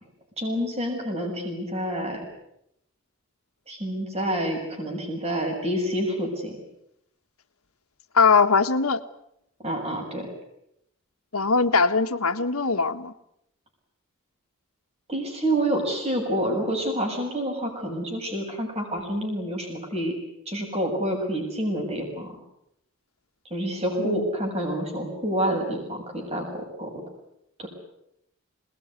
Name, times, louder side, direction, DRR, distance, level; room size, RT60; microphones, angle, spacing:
voice 1, 0.4-2.2 3.7-6.6 9.6-10.3 15.1-20.1 20.4-22.3 23.5-27.0 27.6-27.7, right 1 dB, 30° right, 1 dB, 6.7 m, -28 dB
voice 2, 8.1-9.0 11.3-13.1 24.0-24.2, left 4 dB, 90° left, 8 dB, 1.7 m, -21 dB
27.0 x 20.5 x 9.8 m, 0.79 s
head